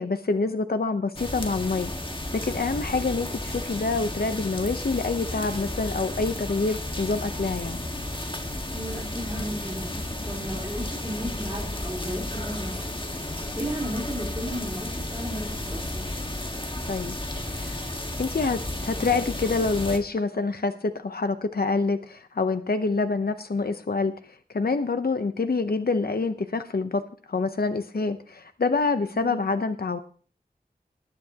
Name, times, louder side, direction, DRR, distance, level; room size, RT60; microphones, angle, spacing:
voice 1, 0.0-1.9 2.4-7.8 16.9-17.2 17.5-17.8 18.2-24.1 24.5-27.0 27.3-30.0, left 3 dB, 70° left, 9 dB, 0.8 m, -26 dB
sound 1, 1.2-20.0, left 1 dB, 30° left, 1.6 m, -33 dB
voice 2, 8.7-9.9 10.2-13.0 13.3-16.0 29.1-29.4, equal, 20° right, -5 dB, 3.8 m, -34 dB
19.5 x 10.0 x 2.9 m, 0.41 s
wide cardioid pair, 60°, 16 cm